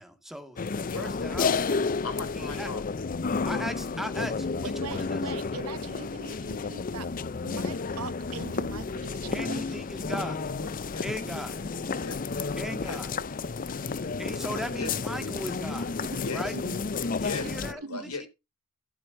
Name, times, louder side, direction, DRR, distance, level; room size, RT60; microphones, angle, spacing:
voice 1, 0.0-1.8 2.3-2.7 3.4-5.2 5.6-5.7 9.3-10.4 11.0-11.6 12.6-13.1 14.2-15.9 16.3-16.5 17.2-18.3, equal, ahead, 1.9 m, -38 dB
sound 1, 0.6-17.7, left 4 dB, 40° left, 0.6 m, -31 dB
voice 2, 0.8-1.1 2.0-3.1 10.6-11.1 12.0-12.2 12.8-13.0 14.7-15.0 16.1-16.4 17.1-18.3, left 3 dB, 85° left, 3.3 m, -38 dB
voice 3, 4.6-7.1 7.4-9.6 16.5-16.8 17.8-18.1, right 4 dB, 75° right, 0.9 m, -41 dB
16.0 x 7.7 x 2.7 m
head